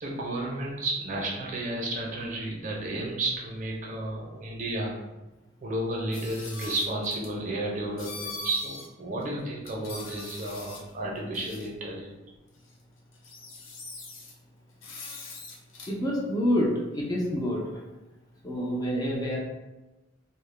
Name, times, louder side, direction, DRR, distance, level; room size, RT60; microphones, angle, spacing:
voice 1, 0.0-5.0 5.6-12.1, right 1 dB, 40° right, -2 dB, 0.5 m, -32 dB
sound 1, 6.1-7.3 8.0-8.9 9.2-9.3 9.6-10.9 11.3-11.7 12.7-12.8 13.1-14.3 14.8-15.9, left 3 dB, 80° left, 0.5 m, -42 dB
voice 2, 15.9-17.6 18.4-19.4, equal, 20° left, -3 dB, 0.3 m, -27 dB
2.1 x 2.0 x 3.1 m, 1.1 s
head